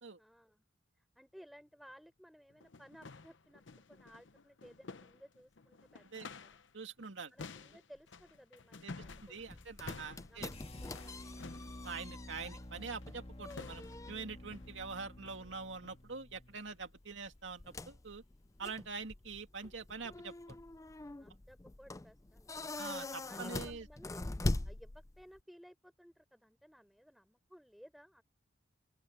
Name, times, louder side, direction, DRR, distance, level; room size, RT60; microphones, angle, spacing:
voice 1, 0.2-0.6 0.9-6.6 7.3-9.7 10.3-11.5 21.2-24.2 24.6-28.2, equal, ahead, 4.0 m, -59 dB
sound 1, 1.9-2.0 2.5-6.7 7.0-11.8 13.0-13.2 13.5-14.1 14.5-14.8 15.2-15.5 15.8-16.0 16.5-16.7 17.2-17.3 18.0-18.1, left 4 dB, 70° left, 0.9 m, -52 dB
voice 2, 6.7-7.3 8.8-8.9 9.2-10.5 11.8-18.2 18.6-20.6 22.7-23.9, right 4 dB, 70° right, 2.4 m, -45 dB
sound 2, 9.0-25.4, left 2 dB, 15° left, 0.5 m, -44 dB
sound 3, 10.5-16.6, left 1 dB, 30° left, 1.7 m, -51 dB
open air
head